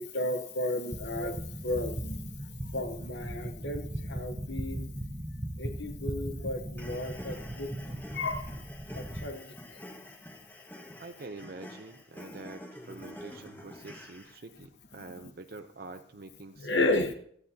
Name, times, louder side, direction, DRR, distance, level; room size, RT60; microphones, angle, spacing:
voice 1, 0.0-2.3 2.6-4.9 5.6-7.7 8.1-8.6 8.9-9.4 9.7-9.8 16.6-17.1, left 2 dB, 60° left, 7 dB, 1.1 m, -33 dB
sound 1, 0.9-9.3, right 1 dB, 15° right, 0.8 m, -38 dB
sound 2, 6.8-14.4, equal, 10° left, 1.6 m, -48 dB
voice 2, 11.0-17.0, right 3 dB, 50° right, 8 dB, 0.6 m, -46 dB
16.5 x 14.0 x 2.8 m, 0.65 s
head